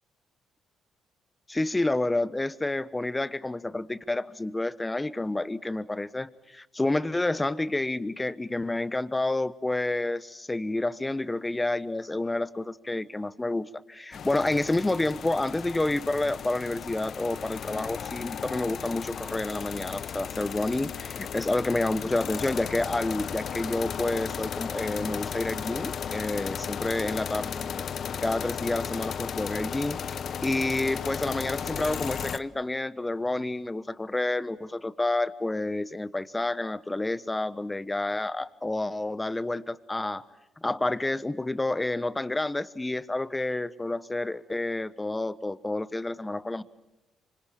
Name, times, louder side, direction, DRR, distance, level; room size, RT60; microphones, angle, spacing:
voice 1, 1.5-27.8 28.2-40.2 40.6-46.6, left 2 dB, 15° left, 16 dB, 1.1 m, -29 dB
sound 1, 14.1-32.4, left 7 dB, 55° left, 0.9 m, -35 dB
26.0 x 25.5 x 8.8 m, 0.96 s
cardioid pair, 90°, 0 cm